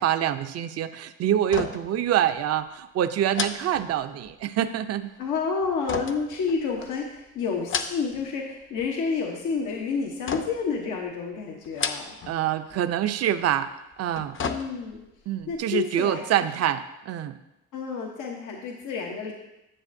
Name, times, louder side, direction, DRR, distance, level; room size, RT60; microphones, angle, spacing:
voice 1, 0.0-5.1 12.3-13.7 14.0-14.3 15.3-17.3, right 10 dB, 55° right, 10 dB, 0.5 m, -26 dB
sound 1, 1.4-2.0 2.3-2.4 3.3-4.4 5.9-7.0 7.5-8.3 8.6-9.2 10.3-10.8 11.6-12.4 12.7-12.8 13.9-15.1 15.5-15.6, left 5 dB, 40° left, 0.6 m, -33 dB
voice 2, 5.2-12.1 14.4-15.0 15.5-16.2 17.7-19.3, left 5 dB, 85° left, 0 dB, 1.0 m, -29 dB
9.9 x 7.3 x 2.6 m, 0.93 s
cardioid pair, 90°, 30 cm